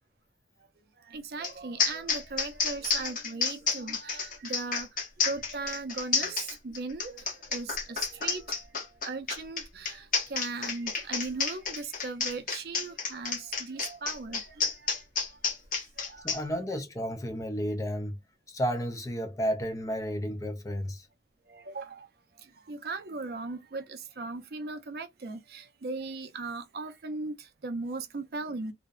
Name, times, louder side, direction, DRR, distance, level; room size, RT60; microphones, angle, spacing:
voice 1, 1.1-4.9 5.2-7.2 7.5-8.6 9.0-15.0 16.1-16.5 21.5-22.1 22.7-27.4 27.6-28.7, right 3 dB, 60° right, 0.5 m, -38 dB
sound 1, 1.4-1.5 1.8-16.4, left 5 dB, 50° left, 0.7 m, -30 dB
voice 2, 16.2-18.2 18.5-21.1, equal, 20° left, 0.4 m, -32 dB
2.6 x 2.0 x 2.4 m
head